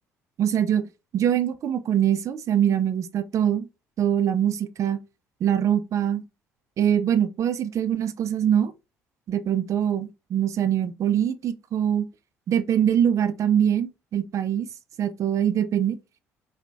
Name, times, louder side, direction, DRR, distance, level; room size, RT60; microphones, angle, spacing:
voice 1, 0.4-3.7 4.0-5.0 5.4-6.2 6.8-8.7 9.3-12.1 12.5-14.7 15.0-16.0, right 9 dB, 45° right, 0.4 m, -23 dB
3.6 x 2.1 x 2.3 m
figure-of-eight pair, 50°, 7 cm